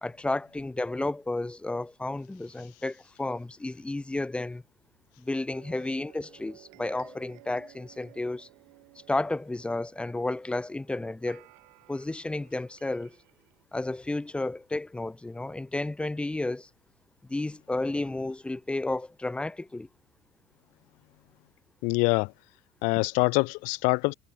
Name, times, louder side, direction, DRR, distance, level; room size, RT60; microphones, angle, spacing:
voice 1, 0.0-4.6 5.2-8.5 9.1-11.5 11.9-13.2 13.7-16.7 17.2-19.9, left 2 dB, 5° left, 1.1 m, -32 dB
sound 1, 5.5-13.6, right 30 dB, 70° right, 5.7 m, -56 dB
voice 2, 21.8-22.3 22.8-24.1, left 29 dB, 65° left, 0.9 m, -24 dB
supercardioid pair, 125°, 14 cm